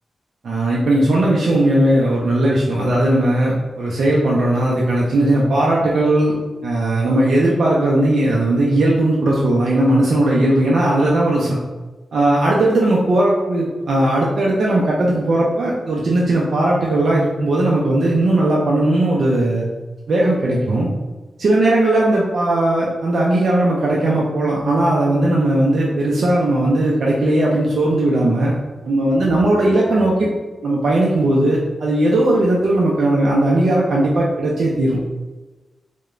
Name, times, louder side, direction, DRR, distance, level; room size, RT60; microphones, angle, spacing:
voice 1, 0.4-6.3 6.6-11.6 12.1-19.7 20.1-20.9 21.4-28.5 28.8-30.3 30.6-35.0, right 1 dB, 70° right, -4 dB, 0.4 m, -17 dB
2.9 x 2.1 x 2.4 m, 1.2 s
cardioid pair, 70°, 0 cm